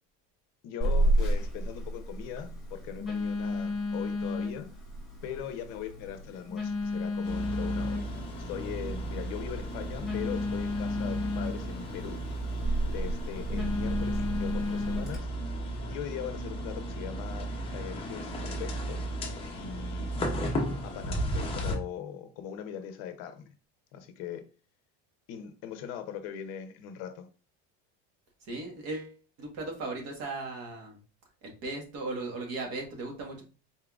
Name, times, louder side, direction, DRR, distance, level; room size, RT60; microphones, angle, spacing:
voice 1, 0.6-4.7 5.2-12.2 12.9-15.3 15.9-19.0 19.6-20.1 20.8-23.5 23.9-24.4 25.3-27.3, left 9 dB, 55° left, 8 dB, 0.7 m, -40 dB
Telephone, 0.8-15.2, left 1 dB, ahead, 1.7 m, -32 dB
sound 1, 7.2-21.8, right 1 dB, 15° left, 0.7 m, -35 dB
voice 2, 28.4-31.0 31.4-33.4, right 2 dB, 50° right, 2 dB, 1.5 m, -37 dB
4.2 x 3.6 x 2.4 m, 0.34 s
cardioid pair, 165°, 32 cm